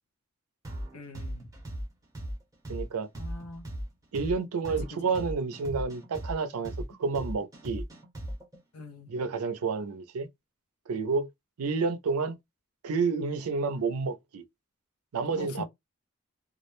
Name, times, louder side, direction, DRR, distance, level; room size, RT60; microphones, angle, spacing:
sound 1, 0.6-8.6, equal, 15° right, 0.6 m, -38 dB
voice 1, 0.9-1.5 3.2-3.7 4.7-5.2 8.7-9.1 15.3-15.6, left 3 dB, 85° left, 0.6 m, -42 dB
voice 2, 2.7-3.1 4.1-6.7 7.0-7.8 9.1-10.3 10.9-11.3 11.6-12.4 12.8-14.4 15.1-15.6, right 4 dB, 90° right, 0.5 m, -30 dB
2.3 x 2.1 x 2.9 m
head